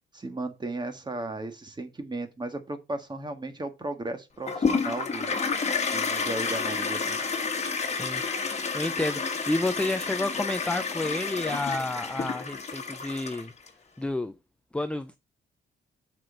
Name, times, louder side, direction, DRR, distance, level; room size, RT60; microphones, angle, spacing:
voice 1, 0.1-5.3 5.9-7.2, right 2 dB, 20° right, 1.6 m, -35 dB
Toilet flush, 4.5-13.7, left 5 dB, 35° left, 1.4 m, -30 dB
voice 2, 7.9-13.5 14.0-14.3 14.7-15.2, left 2 dB, 5° left, 0.5 m, -30 dB
6.2 x 4.3 x 6.2 m
cardioid pair, 90°, 20 cm